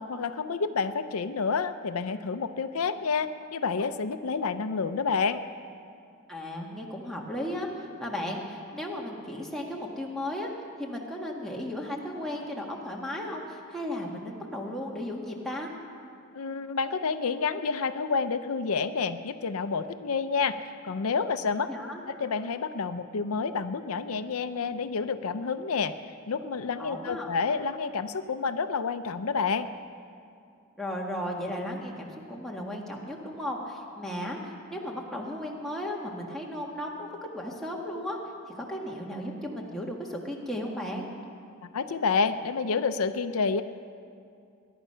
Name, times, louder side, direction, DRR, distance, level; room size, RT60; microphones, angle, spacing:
voice 1, 0.0-5.4 16.3-20.6 20.8-21.7 22.1-25.9 26.3-29.7 41.6-43.6, left 5 dB, 80° left, 10 dB, 0.6 m, -29 dB
voice 2, 6.3-10.5 10.8-15.7 21.7-22.0 26.8-27.3 30.8-38.2 38.6-41.1, left 1 dB, ahead, -2 dB, 1.6 m, -35 dB
21.5 x 11.0 x 5.6 m, 2.5 s
head